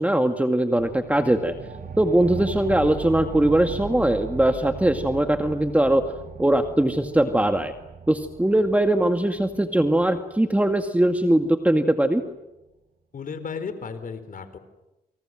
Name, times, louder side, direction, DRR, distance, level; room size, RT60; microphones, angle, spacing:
voice 1, 0.0-1.5 2.0-6.0 6.4-7.7 8.1-12.2, right 1 dB, 10° right, 6 dB, 2.1 m, -21 dB
sound 1, 0.8-11.8, right 6 dB, 70° right, 3.8 m, -38 dB
voice 2, 13.1-14.6, left 5 dB, 60° left, 11 dB, 4.4 m, -34 dB
29.0 x 26.0 x 7.8 m, 0.98 s
cardioid pair, 75°, 16 cm